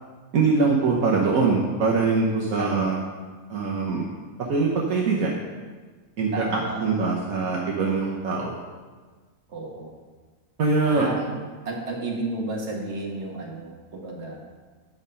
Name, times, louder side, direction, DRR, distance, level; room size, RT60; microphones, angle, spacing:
voice 1, 0.3-3.0 3.5-4.1 4.4-5.3 6.2-8.6 10.6-11.1, right 4 dB, 70° right, -2 dB, 1.4 m, -23 dB
voice 2, 2.6-2.9 6.3-7.0 9.5-10.0 10.8-11.3 11.7-14.4, right 2 dB, 50° right, -2 dB, 1.8 m, -32 dB
9.6 x 5.3 x 5.6 m, 1.4 s
omnidirectional pair, 1.6 m